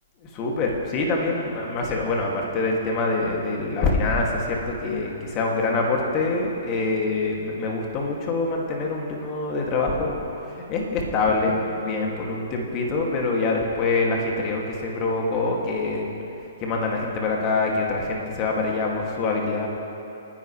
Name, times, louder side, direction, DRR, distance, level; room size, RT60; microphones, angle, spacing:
voice 1, 0.3-10.1 10.4-16.1 16.6-19.7, left 3 dB, 30° left, -1 dB, 2.5 m, -25 dB
29.5 x 10.5 x 3.4 m, 2.9 s
figure-of-eight pair, 115°, 0 cm